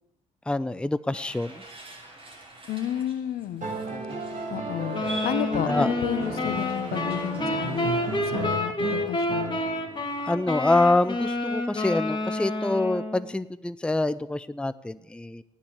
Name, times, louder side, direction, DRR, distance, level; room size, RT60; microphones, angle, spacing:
voice 1, 0.5-1.5 3.9-4.2 5.7-5.9 10.2-15.4, left 2 dB, 5° left, 15 dB, 0.6 m, -26 dB
sound 1, 1.1-8.2, right 2 dB, 35° right, 6.5 m, -46 dB
voice 2, 2.7-3.7 4.5-7.9 8.2-9.6, left 11 dB, 65° left, 13 dB, 1.2 m, -32 dB
sound 2, 3.6-10.0 11.5-11.6, right 2 dB, 50° right, 5.2 m, -33 dB
sound 3, 4.9-13.3, left 2 dB, 30° left, 2.8 m, -29 dB
14.5 x 9.8 x 8.2 m, 0.90 s
hypercardioid pair, 50°, 17 cm